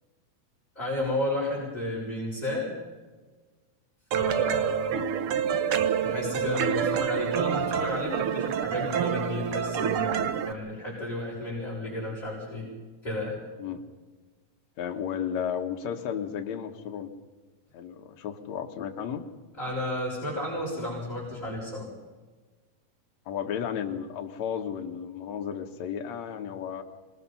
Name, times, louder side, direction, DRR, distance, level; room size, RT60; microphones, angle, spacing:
voice 1, 0.8-2.7 4.1-5.3 6.0-12.7 13.0-13.4 19.6-21.9, left 1 dB, 10° left, -7 dB, 6.9 m, -32 dB
sound 1, 4.1-10.5, right 8 dB, 80° right, 1.2 m, -27 dB
voice 2, 14.8-17.1 17.7-19.2 23.3-26.8, left 8 dB, 60° left, 4 dB, 2.5 m, -33 dB
26.5 x 20.5 x 5.7 m, 1.3 s
omnidirectional pair, 3.8 m